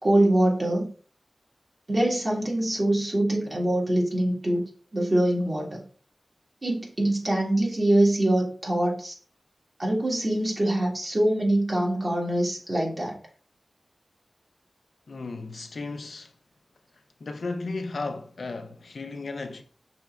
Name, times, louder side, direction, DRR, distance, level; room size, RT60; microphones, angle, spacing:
voice 1, 0.0-0.9 1.9-4.6 4.9-5.8 6.6-9.1 9.8-13.2, right 1 dB, 45° right, 1.7 m, -24 dB
voice 2, 15.1-16.3 17.2-19.6, left 3 dB, 80° left, 0.5 m, -34 dB
5.9 x 3.4 x 2.4 m
wide cardioid pair, 80°, 0 cm